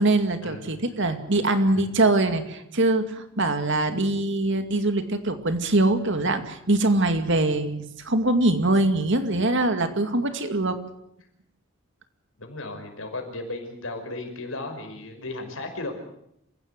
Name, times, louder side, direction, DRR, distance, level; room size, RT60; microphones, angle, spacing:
voice 1, 0.0-10.8, right 2 dB, 60° right, 8 dB, 2.4 m, -23 dB
voice 2, 12.4-15.9, left 2 dB, 75° left, 5 dB, 5.5 m, -35 dB
27.5 x 16.5 x 8.2 m, 0.78 s
head